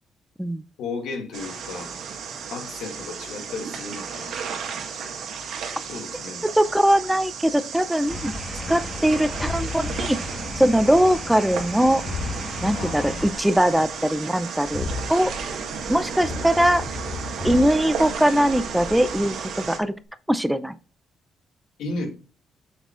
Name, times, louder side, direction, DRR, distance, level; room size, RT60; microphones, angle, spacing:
voice 1, 0.8-1.9 2.5-5.1 5.9-6.4 12.7-13.5 21.8-22.1, left 3 dB, 80° left, 3 dB, 2.1 m, -35 dB
sound 1, 1.3-19.8, right 6 dB, 75° right, 1.6 m, -34 dB
voice 2, 6.5-8.3 8.7-10.2 10.6-12.0 12.6-15.3 15.9-16.8 17.4-19.9 20.3-20.8, equal, 5° right, 13 dB, 0.5 m, -21 dB
sound 2, 8.1-13.3, left 2 dB, 25° left, 1.3 m, -35 dB
sound 3, 9.4-11.5 12.1-13.9 14.6-19.6, left 3 dB, 45° left, 2.7 m, -35 dB
8.1 x 5.9 x 2.5 m, 0.36 s
cardioid pair, 90°, 0 cm